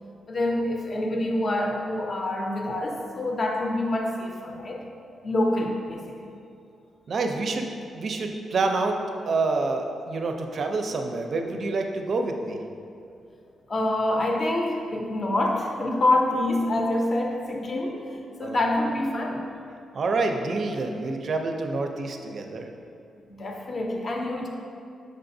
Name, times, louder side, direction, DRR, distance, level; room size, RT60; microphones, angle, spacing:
voice 1, 0.3-4.9 5.2-6.2 13.7-19.5 23.3-24.5, left 1 dB, 35° left, 1 dB, 0.6 m, -26 dB
voice 2, 7.1-9.0 9.3-12.6 18.4-18.6 19.9-22.7, right 3 dB, 45° right, 4 dB, 0.4 m, -27 dB
6.4 x 5.7 x 2.6 m, 2.5 s
wide cardioid pair, 155°, 0 cm